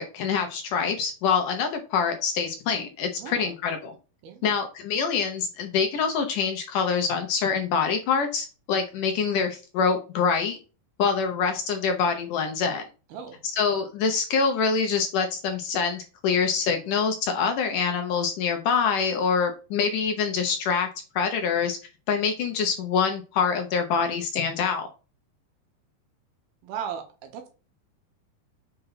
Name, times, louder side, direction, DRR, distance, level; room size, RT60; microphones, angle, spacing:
voice 1, 0.0-4.0 4.4-10.6 11.0-12.8 13.5-20.9 21.2-21.8 22.1-24.9, left 6 dB, 70° left, 5 dB, 2.2 m, -25 dB
voice 2, 3.2-3.6 4.2-4.6 13.1-13.4 26.6-27.5, right 8 dB, 75° right, 5 dB, 3.3 m, -37 dB
6.7 x 5.3 x 5.8 m, 0.34 s
omnidirectional pair, 4.6 m